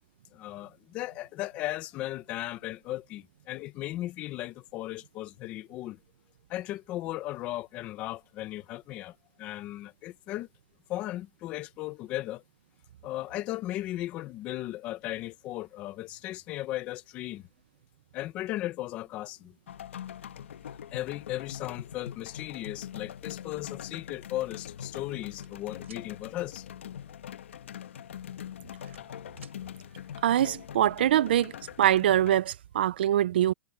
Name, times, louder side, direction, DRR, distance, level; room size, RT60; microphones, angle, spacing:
voice 1, 0.3-6.0 6.5-10.5 10.9-12.4 13.0-17.5 18.1-19.6 20.9-26.7, left 15 dB, 20° left, 0.7 m, -36 dB
sound 1, 19.7-32.4, left 9 dB, 75° left, 1.3 m, -43 dB
sound 2, 25.4-26.1 27.7-27.9 28.4-29.6, right 9 dB, 90° right, 6.5 m, -54 dB
voice 2, 30.2-31.5 31.8-33.5, right 11 dB, 55° right, 0.4 m, -23 dB
supercardioid pair, 180°, 7 cm